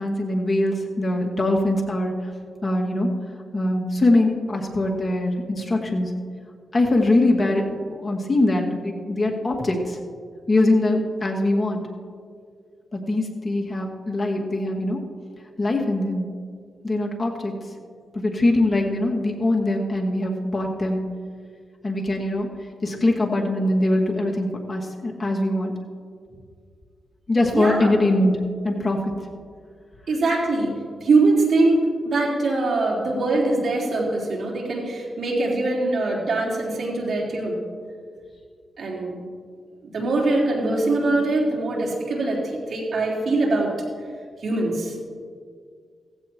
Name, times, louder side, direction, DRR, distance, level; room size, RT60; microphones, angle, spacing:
voice 1, 0.0-2.1 2.6-3.1 3.5-6.1 6.7-10.0 10.5-11.9 12.9-15.0 15.6-16.3 16.8-17.5 18.1-21.1 21.8-22.5 22.8-25.8 27.3-29.1 40.7-40.8, left 1 dB, 35° left, 0 dB, 2.1 m, -22 dB
voice 2, 27.5-27.9 30.1-30.7 31.0-37.6 38.8-39.2 39.8-43.7 44.4-44.9, right 2 dB, 70° right, -4 dB, 3.9 m, -22 dB
16.5 x 15.5 x 3.0 m, 2.1 s
cardioid pair, 80°, 0 cm